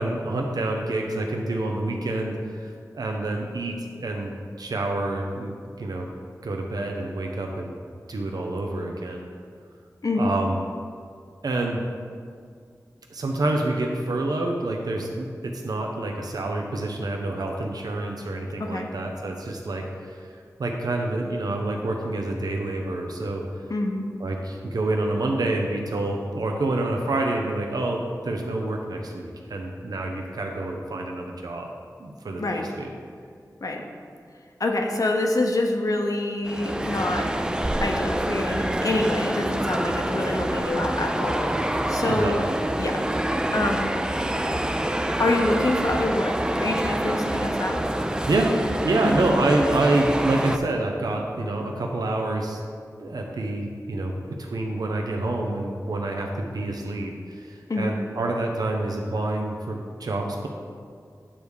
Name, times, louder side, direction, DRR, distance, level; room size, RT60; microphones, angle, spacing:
voice 1, 0.0-4.3 4.6-6.1 6.4-7.8 8.1-9.3 10.1-10.6 11.4-11.8 13.1-23.4 24.2-31.7 32.0-32.9 42.1-42.5 48.3-52.6 53.0-60.5, right 2 dB, 85° right, 1 dB, 0.7 m, -27 dB
voice 2, 23.7-24.0 32.4-32.7 33.6-33.8 34.6-37.3 37.8-42.5 42.8-43.0 43.5-43.9 45.2-47.8 49.0-49.3 57.7-57.9, left 2 dB, 65° left, 2 dB, 0.8 m, -26 dB
sound 1, 36.4-50.6, right 1 dB, 10° right, 0.4 m, -26 dB
8.7 x 3.5 x 6.4 m, 2.1 s
wide cardioid pair, 60°, 7 cm